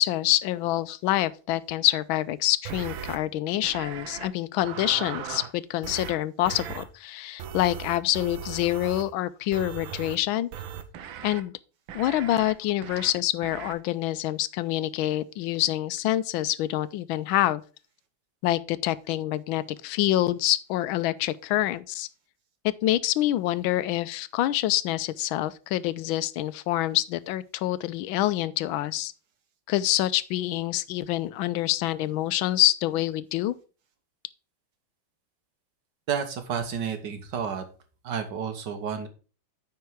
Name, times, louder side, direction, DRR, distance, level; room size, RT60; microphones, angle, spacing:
voice 1, 0.0-10.5 11.2-11.5 11.9-17.6 18.4-22.1 22.8-29.1 29.7-33.5, left 14 dB, 85° left, 1.4 m, -26 dB
sound 1, 2.6-3.2 3.6-4.3 4.6-5.5 5.8-6.2 6.4-6.8 7.4-9.1 9.5-10.2 10.5-11.4 11.9-12.5 12.8-13.1 13.4-13.7, right 8 dB, 85° right, 1.6 m, -38 dB
voice 2, 36.1-37.6 38.0-39.1, right 7 dB, 65° right, 1.7 m, -31 dB
9.6 x 4.6 x 4.5 m
omnidirectional pair, 2.1 m